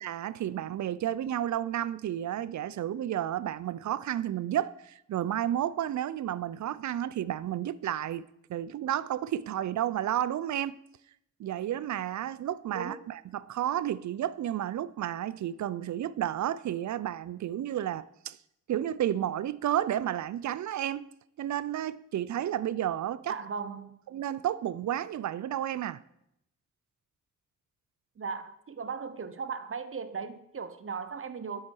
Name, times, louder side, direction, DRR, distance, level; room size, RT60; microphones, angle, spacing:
voice 1, 0.0-10.7 11.4-18.4 18.7-21.1 21.4-23.3 24.1-26.0, right 11 dB, 60° right, 0.5 m, -31 dB
voice 2, 23.3-24.0 28.2-31.6, right 5 dB, 40° right, 0.8 m, -37 dB
8.8 x 7.7 x 4.6 m
cardioid pair, 55°, 33 cm